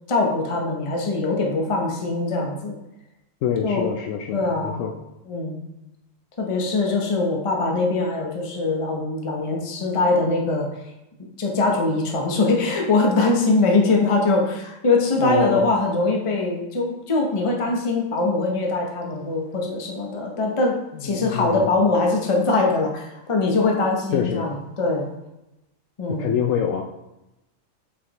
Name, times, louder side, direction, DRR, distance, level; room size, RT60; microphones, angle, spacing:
voice 1, 0.1-2.7 3.6-4.0 4.3-4.8 5.3-5.6 6.4-10.7 11.4-25.1 26.0-26.3, left 3 dB, 30° left, 0 dB, 0.7 m, -22 dB
voice 2, 3.4-4.9 15.2-15.6 21.0-21.7 24.1-24.5 26.1-26.8, left 8 dB, 80° left, 3 dB, 0.9 m, -25 dB
7.9 x 4.1 x 2.9 m, 0.91 s
omnidirectional pair, 1.4 m